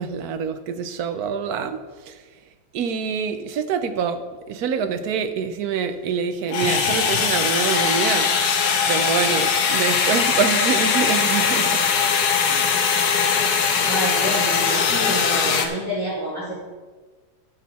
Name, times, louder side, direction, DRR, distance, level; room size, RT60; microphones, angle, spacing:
voice 1, 0.0-1.8 2.1-2.2 2.7-8.3 8.9-11.8 12.5-12.7, right 6 dB, 75° right, 10 dB, 1.2 m, -25 dB
sound 1, 6.5-15.7, left 6 dB, 80° left, 1.5 m, -20 dB
voice 2, 13.4-16.5, right 1 dB, 5° right, -10 dB, 2.8 m, -28 dB
14.0 x 6.4 x 4.2 m, 1.4 s
omnidirectional pair, 1.7 m